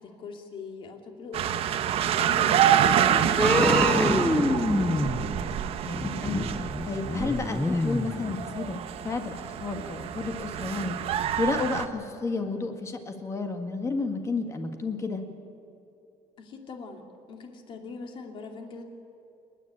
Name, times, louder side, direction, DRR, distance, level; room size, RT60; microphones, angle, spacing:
voice 1, 0.0-1.8 2.1-5.2 16.4-18.8, left 4 dB, 45° left, 4 dB, 2.5 m, -40 dB
sound 1, 1.3-11.9, right 10 dB, 55° right, 0.9 m, -27 dB
sound 2, 3.4-8.8 9.1-9.2, left 2 dB, 10° left, 0.6 m, -27 dB
voice 2, 5.8-6.4 6.8-11.0 11.4-15.2, left 3 dB, 25° left, 6 dB, 1.8 m, -31 dB
29.5 x 10.0 x 8.9 m, 2.8 s
cardioid pair, 150°, 12 cm